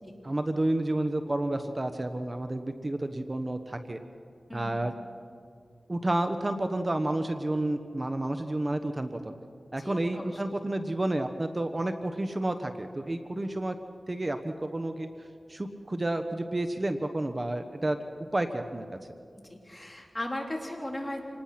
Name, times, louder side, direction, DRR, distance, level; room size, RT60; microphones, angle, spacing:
voice 1, 0.2-4.0 4.5-4.9 5.9-9.3 9.7-13.8 14.1-15.1 15.5-18.0 18.3-18.9, right 1 dB, 35° right, 7 dB, 1.1 m, -30 dB
voice 2, 4.5-4.9 9.8-10.4 19.4-21.2, left 1 dB, 25° left, 1 dB, 3.8 m, -37 dB
27.5 x 19.0 x 5.9 m, 2.3 s
cardioid pair, 50°, 0 cm